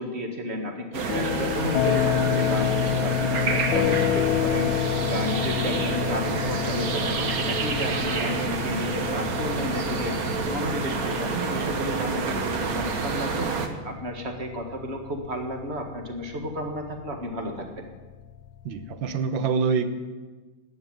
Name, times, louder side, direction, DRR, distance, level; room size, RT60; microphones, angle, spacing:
voice 1, 0.0-17.9, equal, 35° right, 3 dB, 1.9 m, -32 dB
sound 1, 0.9-13.7, right 4 dB, 50° right, 1.4 m, -28 dB
sound 2, 1.1-19.1, left 11 dB, 85° left, 1.4 m, -29 dB
voice 2, 18.6-19.9, right 5 dB, 75° right, 9 dB, 1.7 m, -25 dB
12.0 x 9.1 x 9.3 m, 1.3 s
omnidirectional pair, 2.1 m